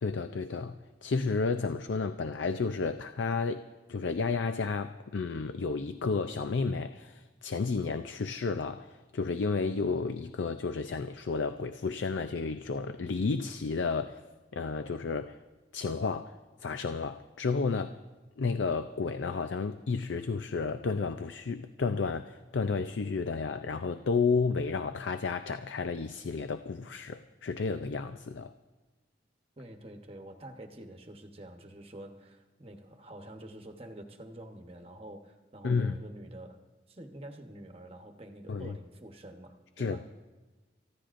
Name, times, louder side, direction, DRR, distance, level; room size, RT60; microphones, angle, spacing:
voice 1, 0.0-14.2 14.5-15.4 15.7-16.4 16.6-18.0 18.4-28.5 35.6-35.9 38.5-38.8 39.8-40.1, left 4 dB, 90° left, 10 dB, 0.5 m, -32 dB
voice 2, 29.6-36.6 36.9-40.1, right 1 dB, 30° right, 4 dB, 1.1 m, -47 dB
29.5 x 15.0 x 2.6 m, 1.2 s
head